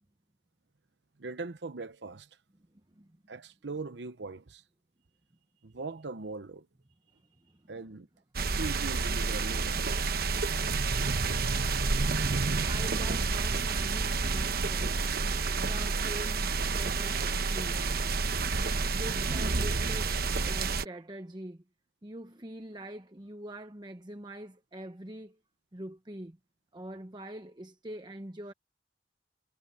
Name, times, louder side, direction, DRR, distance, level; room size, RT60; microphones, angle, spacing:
voice 1, 1.2-2.3 3.3-4.6 5.6-6.7 7.7-8.1 8.4-9.9, right 3 dB, 80° right, 0.9 m, -40 dB
voice 2, 7.1-7.7 12.6-15.1 15.6-18.2 18.9-21.6 22.0-25.4 25.7-26.4 26.7-28.5, right 1 dB, 25° right, 0.9 m, -44 dB
sound 1, 8.3-20.8, right 4 dB, 60° right, 1.0 m, -29 dB
head